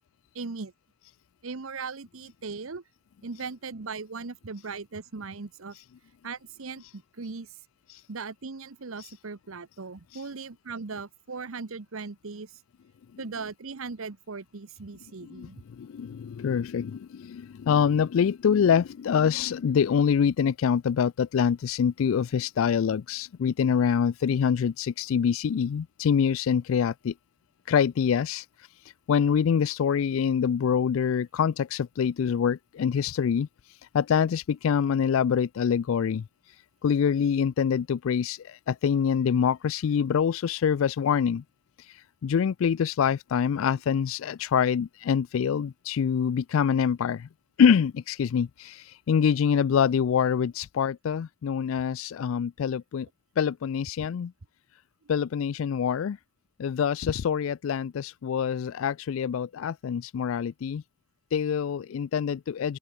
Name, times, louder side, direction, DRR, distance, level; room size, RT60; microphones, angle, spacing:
voice 1, 0.3-0.7 1.4-2.8 3.2-5.8 6.2-7.5 8.1-12.5 13.2-15.6, right 4 dB, 75° right, 0.9 m, -38 dB
voice 2, 15.3-27.1 27.7-28.7 29.1-36.6 36.8-41.4 41.8-47.3 47.6-53.1 53.4-54.3 55.1-56.2 56.6-60.8 61.3-62.8, left 7 dB, 70° left, 0.3 m, -25 dB
open air
head